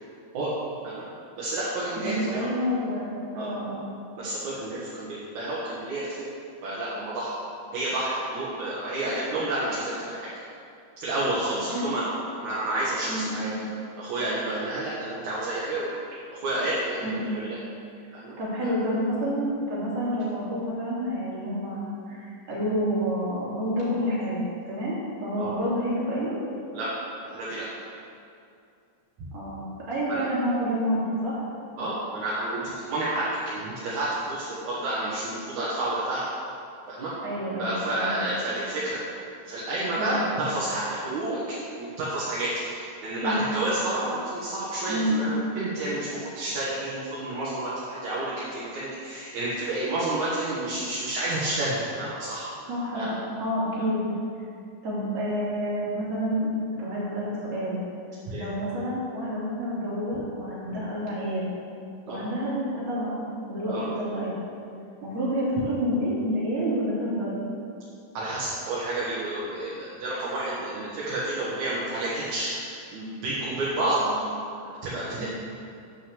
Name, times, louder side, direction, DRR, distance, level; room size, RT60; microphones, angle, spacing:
voice 1, 1.4-2.5 3.4-3.5 4.2-6.3 6.6-7.3 7.7-10.3 11.0-12.0 12.4-13.5 14.0-16.0 16.3-17.1 17.3-17.6 18.1-18.3 25.4-25.5 26.7-26.9 27.2-27.6 30.1-30.3 31.8-36.2 36.9-37.1 37.6-39.0 39.5-41.4 41.8-52.5 52.9-53.1 58.3-58.4 62.1-62.2 63.7-63.8 68.1-72.7 72.9-74.0 74.8-75.3, right 1 dB, 70° right, -8 dB, 3.0 m, -30 dB
voice 2, 1.9-3.9 11.7-11.9 13.1-13.5 17.0-17.4 18.4-26.3 29.3-29.6 29.9-31.4 37.2-38.2 39.9-40.2 41.7-41.8 43.2-43.4 44.9-45.2 52.7-54.0 54.8-56.5 56.8-57.8 58.3-61.5 62.1-63.2 63.5-64.3 65.0-67.4 74.0-74.2 75.2-75.3, equal, 55° right, -8 dB, 4.1 m, -29 dB
9.8 x 6.3 x 7.2 m, 2.5 s
omnidirectional pair, 3.5 m